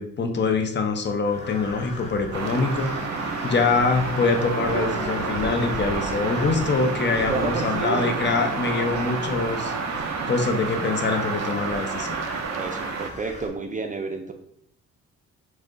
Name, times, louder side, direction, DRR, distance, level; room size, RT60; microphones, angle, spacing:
voice 1, 0.0-9.7 10.0-12.2, left 4 dB, 35° left, 5 dB, 0.7 m, -24 dB
Crow, 1.2-13.5, left 1 dB, 20° left, 1.6 m, -39 dB
sound 1, 2.3-13.1, right 4 dB, 60° right, 0.7 m, -29 dB
voice 2, 7.3-8.1 12.5-14.3, right 4 dB, 25° right, 5 dB, 0.4 m, -30 dB
3.7 x 3.2 x 3.7 m, 0.70 s
cardioid pair, 90°, 30 cm